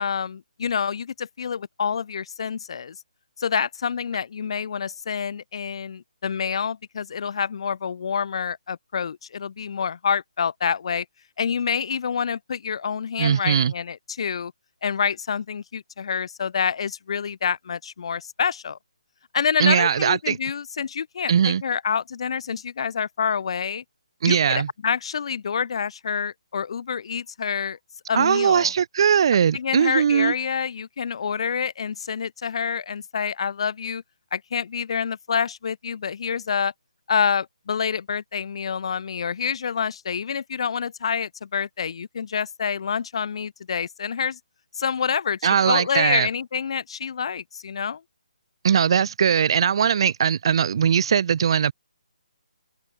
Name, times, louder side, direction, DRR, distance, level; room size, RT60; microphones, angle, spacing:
voice 1, 0.0-3.0 3.4-11.1 11.4-14.5 14.8-18.8 19.3-23.8 24.3-27.8 28.1-28.7 29.5-34.0 34.3-36.7 37.1-44.4 44.8-48.0, left 6 dB, 45° left, 3.4 m, -27 dB
voice 2, 13.2-13.7 19.6-20.4 21.3-21.6 24.2-24.7 28.1-30.3 45.4-46.3 48.6-51.7, right 7 dB, 40° right, 1.0 m, -20 dB
hypercardioid pair, 165°, 4 cm